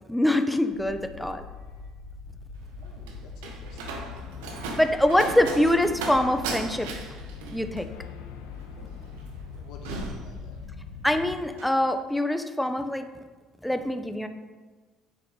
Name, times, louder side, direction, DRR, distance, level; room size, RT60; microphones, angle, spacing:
voice 1, 0.1-1.4 4.8-6.9 7.5-7.9 11.0-13.1 13.6-14.3, left 1 dB, 5° left, 7 dB, 0.9 m, -24 dB
sound 1, 0.7-11.4, left 5 dB, 90° left, 1.0 m, -42 dB
voice 2, 1.5-1.9 2.8-4.0 9.6-10.6, left 4 dB, 70° left, 2 dB, 1.8 m, -49 dB
Slam, 2.5-11.0 11.3-11.8, right 3 dB, 90° right, 1.3 m, -37 dB
9.4 x 7.1 x 4.5 m, 1.4 s
supercardioid pair, 75°, 0 cm